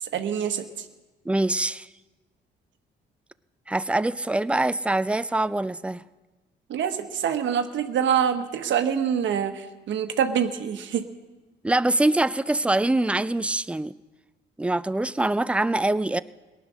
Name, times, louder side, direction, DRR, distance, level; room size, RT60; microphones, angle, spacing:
voice 1, 0.0-0.7 6.7-11.0, right 8 dB, 70° right, 7 dB, 1.2 m, -25 dB
voice 2, 1.3-1.9 3.7-6.0 11.6-13.9 14.6-16.2, right 2 dB, 5° right, 15 dB, 0.4 m, -24 dB
18.0 x 9.9 x 6.3 m, 1.2 s
cardioid pair, 90°, 20 cm